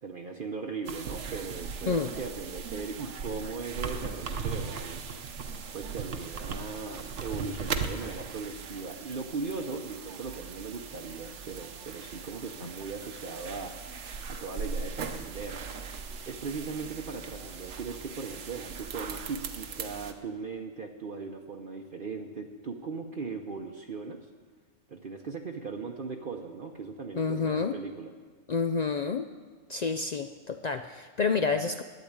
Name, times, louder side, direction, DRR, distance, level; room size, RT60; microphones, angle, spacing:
voice 1, 0.0-5.0 5.7-13.8 14.3-15.6 16.3-24.2 24.9-28.1, right 4 dB, 50° right, 3 dB, 0.9 m, -38 dB
sound 1, 0.9-20.1, right 5 dB, 65° right, 1.2 m, -39 dB
voice 2, 27.2-27.8 28.5-29.3 29.7-31.8, left 5 dB, 70° left, 8 dB, 0.4 m, -29 dB
12.0 x 9.9 x 8.6 m, 1.5 s
omnidirectional pair, 1.3 m